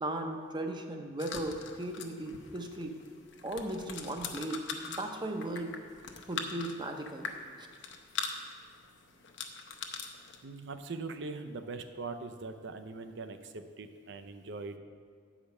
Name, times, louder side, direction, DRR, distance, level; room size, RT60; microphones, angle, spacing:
voice 1, 0.0-3.0 3.4-5.8 6.3-7.3, right 1 dB, 25° right, 5 dB, 0.7 m, -37 dB
sound 1, 1.2-10.4, left 5 dB, 65° left, 0.7 m, -43 dB
voice 2, 10.4-14.8, right 3 dB, 65° right, 9 dB, 0.6 m, -41 dB
8.6 x 5.1 x 6.5 m, 2.1 s
head